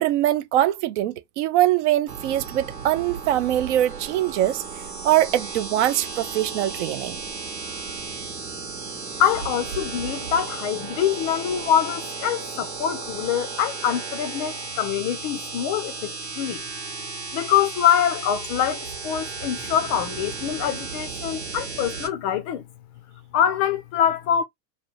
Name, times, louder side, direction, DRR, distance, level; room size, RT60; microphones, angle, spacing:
voice 1, 0.0-4.6 5.0-7.2, right 13 dB, 45° right, 0.5 m, -22 dB
sound 1, 2.1-22.1, right 5 dB, 90° right, 1.5 m, -34 dB
voice 2, 9.2-16.6 17.3-22.6 23.3-24.4, left 9 dB, 30° left, 0.4 m, -24 dB
2.8 x 2.8 x 2.9 m
hypercardioid pair, 95°, 49 cm